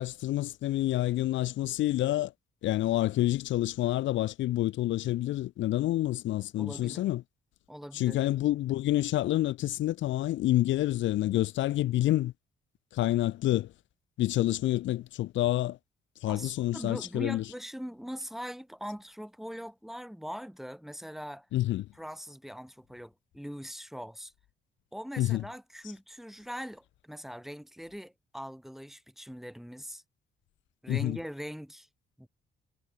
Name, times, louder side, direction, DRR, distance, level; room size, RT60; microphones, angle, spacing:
voice 1, 0.0-2.3 2.6-7.2 7.9-12.3 12.9-13.7 14.2-15.8 16.2-17.5 21.5-21.8 25.2-25.5 25.8-25.9 30.9-31.2, left 15 dB, 75° left, 0.5 m, -28 dB
voice 2, 6.6-7.1 7.7-8.2 16.3-21.5 21.9-24.3 24.9-30.0 30.8-31.9 32.2-32.3, equal, ahead, 1.4 m, -41 dB
cardioid pair, 90°, 20 cm